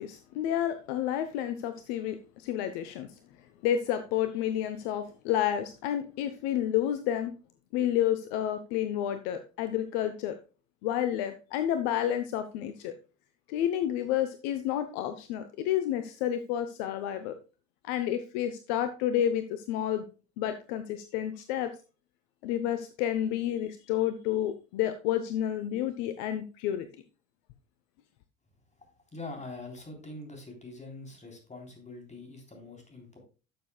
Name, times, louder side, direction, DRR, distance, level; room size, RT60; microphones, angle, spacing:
voice 1, 0.0-3.1 3.6-7.4 7.7-10.4 10.8-12.9 13.5-17.4 17.8-20.0 20.4-21.7 22.4-26.9, left 11 dB, 60° left, 10 dB, 0.8 m, -30 dB
voice 2, 28.8-33.2, left 2 dB, 20° left, 2 dB, 3.6 m, -44 dB
12.5 x 6.9 x 2.3 m, 0.33 s
figure-of-eight pair, 60°, 38 cm